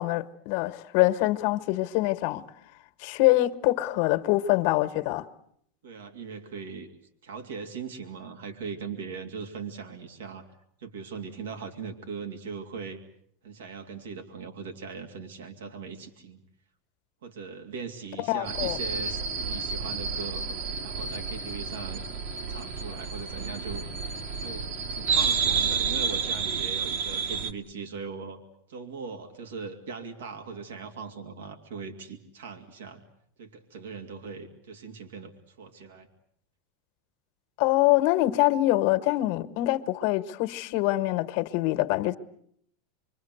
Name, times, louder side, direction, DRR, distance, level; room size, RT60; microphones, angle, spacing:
voice 1, 0.0-2.4 3.0-5.2 18.2-18.8 37.6-42.2, left 17 dB, 60° left, 1.4 m, -24 dB
voice 2, 5.8-6.9 7.2-10.5 10.8-13.0 13.4-16.4 17.2-20.6 20.8-22.0 22.5-23.8 24.4-28.4 28.7-33.0 33.4-36.1, right 5 dB, 90° right, 2.8 m, -40 dB
sound 1, 18.4-27.5, right 5 dB, 60° right, 1.9 m, -30 dB
26.5 x 24.0 x 8.0 m
supercardioid pair, 120°, 0 cm